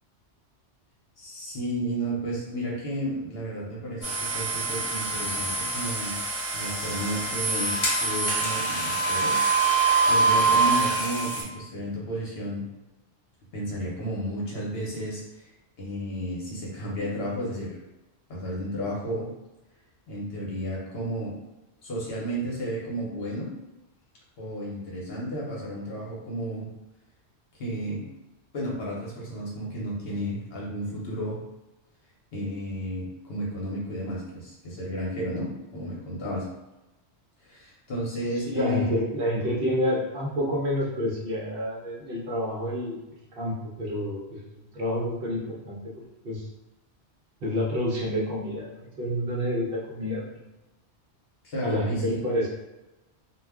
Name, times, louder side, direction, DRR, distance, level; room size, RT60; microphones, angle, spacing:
voice 1, 1.2-6.2 6.5-9.4 9.7-12.6 13.5-15.5 15.8-17.8 18.3-19.3 20.1-21.3 21.8-23.5 24.4-26.7 27.6-28.1 28.5-31.4 32.3-36.5 37.4-38.9 51.4-52.2, equal, 65° left, -4 dB, 1.0 m, -32 dB
sound 1, 4.0-11.4, right 3 dB, 35° left, 0.8 m, -25 dB
voice 2, 38.5-43.0 43.4-44.4 44.7-45.4 45.6-45.9 46.2-46.4 47.4-50.2 51.6-52.5, equal, 60° right, -4 dB, 0.8 m, -28 dB
2.3 x 2.2 x 3.4 m, 1.0 s
omnidirectional pair, 1.1 m